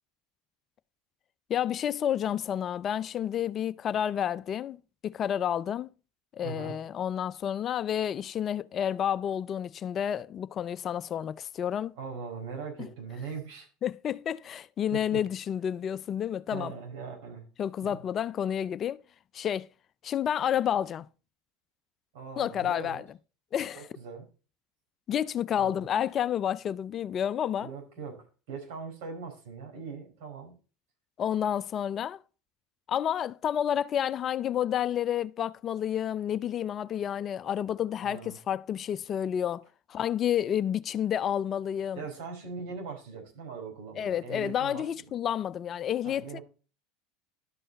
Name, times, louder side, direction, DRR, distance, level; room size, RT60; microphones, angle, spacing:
voice 1, 1.5-5.9 6.3-12.0 13.8-16.7 17.6-19.0 19.3-19.7 20.0-21.1 22.4-23.0 23.5-23.9 25.1-27.7 31.2-32.2 32.9-39.6 39.9-42.0 44.0-46.4, left 9 dB, 40° left, 0.4 m, -30 dB
voice 2, 6.4-6.8 12.0-13.7 14.9-15.2 16.5-17.4 17.8-18.0 22.1-23.0 23.7-24.3 25.6-25.9 27.6-30.5 38.0-38.4 41.9-44.9 46.0-46.4, right 5 dB, 70° right, 4.4 m, -40 dB
12.0 x 5.5 x 4.0 m
hypercardioid pair, 85°, 0 cm